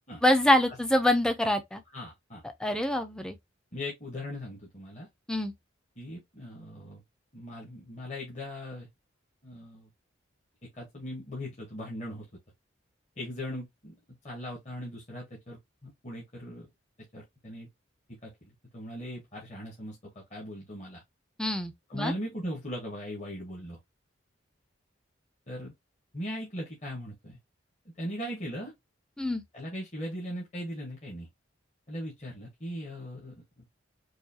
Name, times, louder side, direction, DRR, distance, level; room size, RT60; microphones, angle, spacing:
voice 1, 0.2-1.8 2.6-3.4 5.3-5.5 21.4-22.1 29.2-29.4, left 1 dB, 5° left, 0.4 m, -25 dB
voice 2, 1.9-2.4 3.7-5.1 6.0-7.0 7.3-8.9 9.4-9.9 10.6-12.3 13.2-14.0 14.2-16.7 17.1-17.7 18.1-20.0 20.3-21.0 21.9-23.8 25.5-25.7 26.1-27.4 28.0-28.7 29.5-31.3 31.9-33.6, equal, 35° left, 1.0 m, -39 dB
4.7 x 2.3 x 2.7 m
head